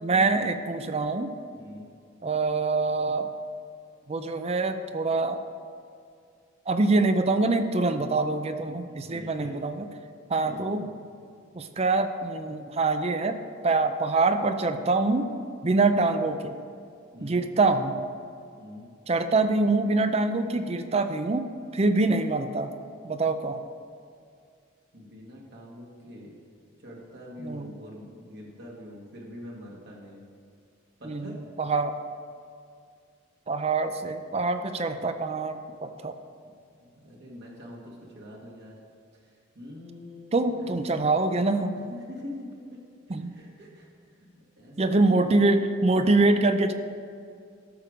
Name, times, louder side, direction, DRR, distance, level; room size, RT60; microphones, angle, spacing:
voice 1, 0.0-1.3 2.2-3.3 4.1-5.4 6.7-9.9 10.3-10.9 11.5-13.4 13.6-15.3 15.6-16.6 17.2-18.1 19.1-21.5 21.7-22.7 23.0-23.6 27.4-27.7 31.0-32.0 33.5-36.1 40.3-41.8 43.1-43.4 44.8-46.7, right 3 dB, 30° right, 9 dB, 0.5 m, -25 dB
voice 2, 1.5-1.9 8.9-9.5 10.5-10.9 17.1-17.4 18.6-18.9 24.9-26.3 26.8-30.2 31.0-31.4 36.4-36.5 36.8-38.7 39.5-40.7 41.7-42.4 42.7-42.8 43.1-43.9 44.2-44.7, left 1 dB, 55° right, -3 dB, 1.7 m, -44 dB
13.0 x 6.7 x 5.0 m, 2.3 s
head